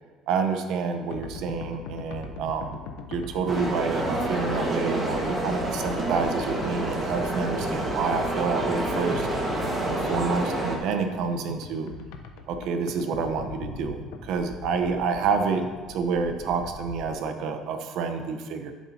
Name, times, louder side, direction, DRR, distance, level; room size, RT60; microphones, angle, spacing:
voice 1, 0.3-2.8 3.1-9.3 9.9-11.9 12.5-14.0 14.2-18.7, right 5 dB, 70° right, 6 dB, 0.9 m, -28 dB
sound 1, 1.1-17.1, left 4 dB, 85° left, 0.8 m, -40 dB
sound 2, 3.5-10.8, right 1 dB, 25° right, 1.7 m, -28 dB
12.5 x 7.3 x 2.9 m, 1.4 s
cardioid pair, 115°, 0 cm